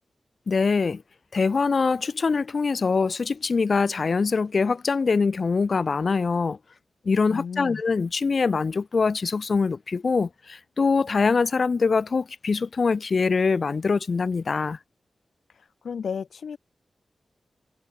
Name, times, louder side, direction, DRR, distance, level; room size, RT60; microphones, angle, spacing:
voice 1, 0.5-1.0 1.3-6.6 7.0-14.8, left 4 dB, 45° left, 2.9 m, -23 dB
voice 2, 7.3-7.8 15.5-16.6, left 6 dB, 80° left, 2.1 m, -34 dB
wide cardioid pair, 175°, 0 cm